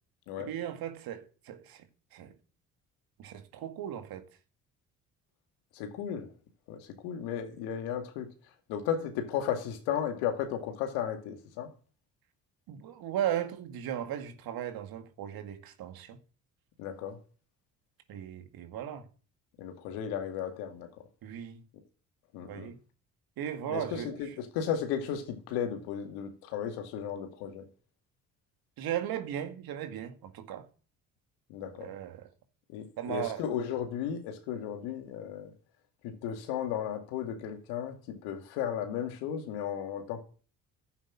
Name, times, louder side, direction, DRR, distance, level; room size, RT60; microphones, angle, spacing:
voice 1, 0.4-2.4 3.2-4.3 12.7-16.2 18.1-19.1 21.2-21.7 22.5-22.8 23.4-24.3 28.8-30.7 31.8-32.3 33.0-33.4, right 10 dB, 65° right, 2.1 m, -37 dB
voice 2, 5.7-6.3 6.7-8.3 8.7-11.7 16.8-17.2 19.6-20.9 22.3-22.7 23.7-27.7 31.5-31.9 32.7-35.5 36.0-40.2, left 8 dB, 80° left, 2.3 m, -35 dB
11.0 x 8.2 x 8.8 m
hypercardioid pair, 55°, 38 cm